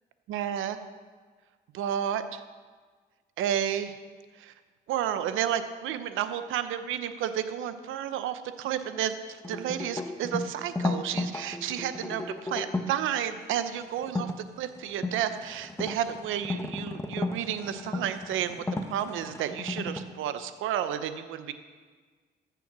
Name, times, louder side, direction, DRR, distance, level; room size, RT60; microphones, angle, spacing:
voice 1, 0.3-0.8 1.7-2.4 3.4-4.0 4.3-4.5 4.9-14.3 14.6-21.5, right 10 dB, 90° right, 10 dB, 0.8 m, -31 dB
sound 1, 9.4-13.0 14.0-14.3 14.9-20.0, left 2 dB, 15° left, 1.1 m, -34 dB
14.5 x 7.0 x 6.1 m, 1.5 s
cardioid pair, 90°, 20 cm